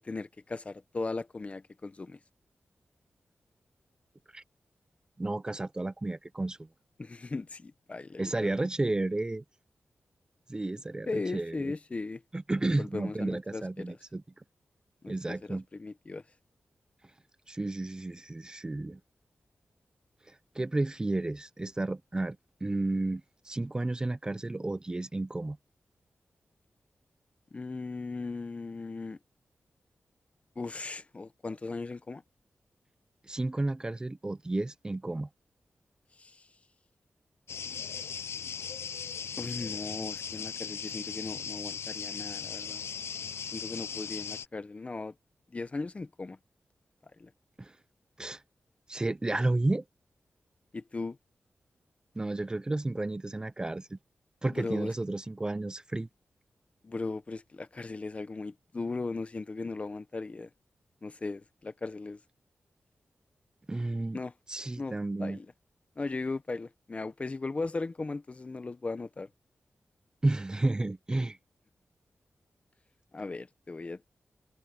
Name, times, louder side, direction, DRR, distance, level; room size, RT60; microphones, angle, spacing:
voice 1, 0.0-2.2 7.0-8.7 11.1-12.2 12.8-14.0 15.0-16.2 27.5-29.2 30.6-32.2 36.2-36.4 39.4-42.8 43.5-45.1 45.5-46.4 47.2-47.3 50.7-51.2 54.5-54.9 56.8-60.5 61.0-62.2 64.1-64.3 64.8-65.5 66.0-69.3 73.1-74.1, left 3 dB, 30° left, 0.9 m, -37 dB
voice 2, 5.2-6.6 8.2-9.4 10.5-11.1 11.3-11.6 12.3-14.2 15.1-15.6 17.5-19.0 20.3-22.4 22.6-25.6 33.3-35.3 47.6-47.7 48.2-48.4 48.9-49.8 52.2-54.0 54.4-56.1 63.7-64.2 64.5-65.4 70.2-71.4, right 2 dB, 20° right, 0.6 m, -32 dB
sound 1, 37.5-44.5, left 7 dB, 85° left, 0.5 m, -38 dB
wide cardioid pair, 145°, 4 cm